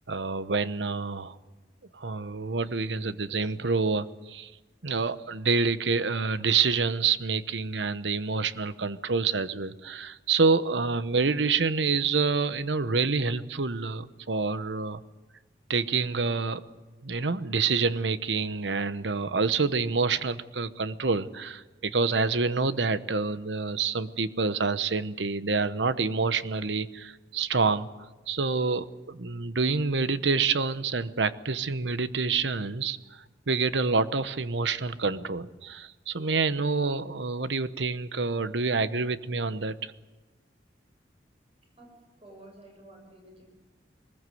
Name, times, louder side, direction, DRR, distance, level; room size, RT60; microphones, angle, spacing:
voice 1, 0.1-1.3 1.9-4.5 4.8-15.0 15.7-16.6 17.0-27.9 28.3-33.0 33.5-39.9, right 4 dB, 85° right, 13 dB, 1.0 m, -27 dB
voice 2, 41.8-43.4, right 1 dB, 35° right, 1 dB, 7.9 m, -51 dB
22.5 x 20.5 x 7.9 m, 1.1 s
head